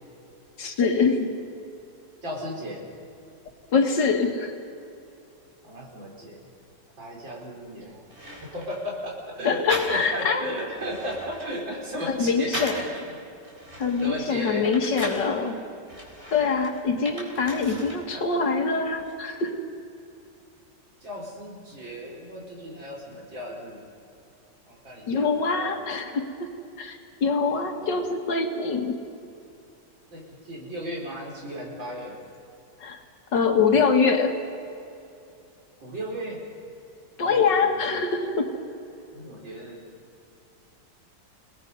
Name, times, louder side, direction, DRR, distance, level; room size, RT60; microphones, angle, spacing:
voice 1, 0.6-1.3 3.7-4.5 9.4-10.4 12.1-12.8 13.8-15.6 16.3-19.6 25.1-26.5 26.8-28.9 32.8-33.0 33.3-34.4 37.2-38.6, left 4 dB, 70° left, 4 dB, 2.5 m, -24 dB
voice 2, 2.2-2.9 5.6-6.5 7.0-8.0 8.4-13.1 14.0-14.7 18.1-18.3 21.0-23.8 24.7-25.8 27.4-28.0 30.1-32.2 35.8-36.4 37.2-37.9 39.1-39.8, equal, 85° right, -2 dB, 5.3 m, -35 dB
sound 1, 7.6-7.7 8.1-8.9 9.7-10.3 10.7-13.0 13.4-15.3 15.9-18.0 18.3-19.1, equal, 35° right, 4.3 m, -38 dB
29.5 x 19.0 x 5.4 m, 2.6 s
omnidirectional pair, 2.0 m